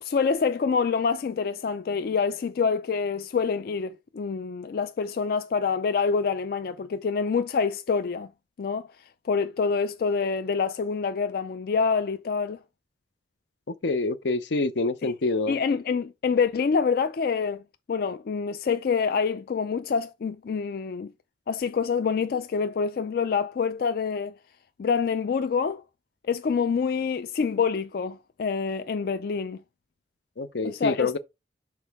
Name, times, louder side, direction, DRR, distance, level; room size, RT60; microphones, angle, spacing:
voice 1, 0.0-8.3 8.6-8.9 9.2-12.6 15.0-15.1 15.5-17.6 17.9-21.1 21.5-24.3 24.8-25.8 26.3-29.6 30.6-31.2, left 5 dB, 55° left, 0.3 m, -26 dB
voice 2, 13.8-15.6 30.4-31.2, left 3 dB, 80° left, 0.7 m, -26 dB
6.3 x 4.5 x 3.5 m
head